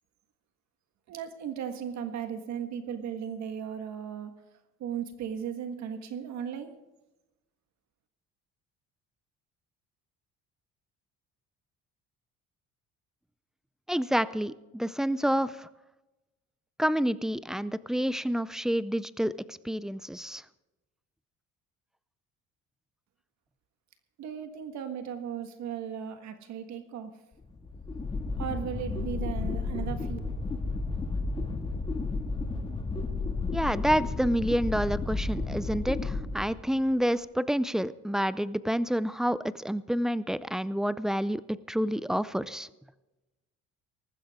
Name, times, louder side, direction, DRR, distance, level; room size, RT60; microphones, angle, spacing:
voice 1, 1.1-4.3 4.8-6.8 24.2-27.1 28.4-30.2, right 8 dB, 65° right, 7 dB, 1.6 m, -36 dB
voice 2, 13.9-15.7 16.8-20.4 33.5-42.7, equal, ahead, 17 dB, 0.4 m, -28 dB
sound 1, 27.4-36.9, left 3 dB, 15° left, 2.0 m, -32 dB
19.0 x 15.0 x 3.6 m, 1.1 s
cardioid pair, 125°, 30 cm